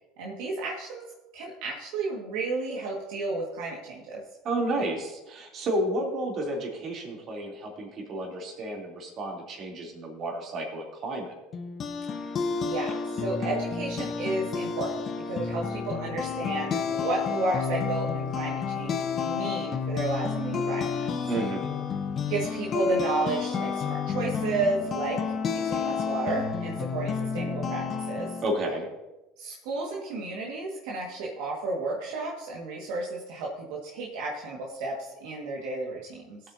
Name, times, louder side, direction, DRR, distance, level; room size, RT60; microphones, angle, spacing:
voice 1, 0.2-1.0 1.3-4.2 12.2-12.3 12.6-21.1 22.3-25.2 25.5-28.3 29.4-36.4, right 3 dB, 75° right, -3 dB, 2.0 m, -32 dB
voice 2, 4.4-11.3 21.3-21.7 28.4-28.9, right 1 dB, 45° right, 0 dB, 3.4 m, -31 dB
sound 1, 11.5-28.5, left 6 dB, 40° left, 1.2 m, -30 dB
17.5 x 8.7 x 2.9 m, 1.0 s
supercardioid pair, 90°, 0 cm